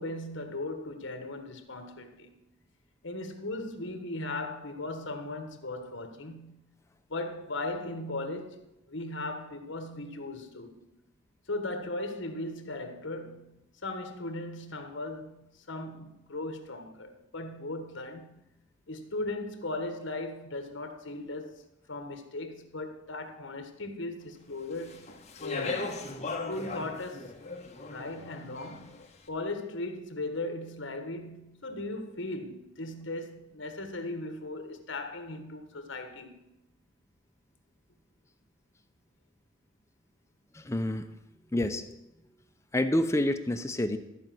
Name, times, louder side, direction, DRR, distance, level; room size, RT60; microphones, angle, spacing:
voice 1, 0.0-2.4 3.0-6.6 7.1-10.9 11.5-18.4 18.9-21.6 21.9-25.1 25.4-27.3 27.9-29.0 29.3-36.4, left 2 dB, 65° left, 1.4 m, -38 dB
Speech, 24.7-29.0, left 3 dB, 35° left, 1.2 m, -38 dB
voice 2, 40.5-41.1 41.5-41.8 42.7-44.0, left 1 dB, 15° left, 0.6 m, -28 dB
13.5 x 5.2 x 7.6 m
head